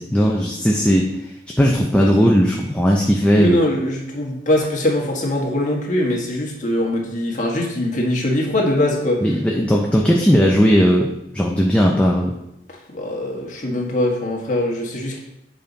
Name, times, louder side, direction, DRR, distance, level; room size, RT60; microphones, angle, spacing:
voice 1, 0.0-3.6 9.2-12.3, equal, 5° left, -2 dB, 0.6 m, -17 dB
voice 2, 3.4-9.2 12.9-15.2, left 1 dB, 45° left, -1 dB, 1.5 m, -22 dB
8.0 x 5.2 x 4.1 m, 0.83 s
head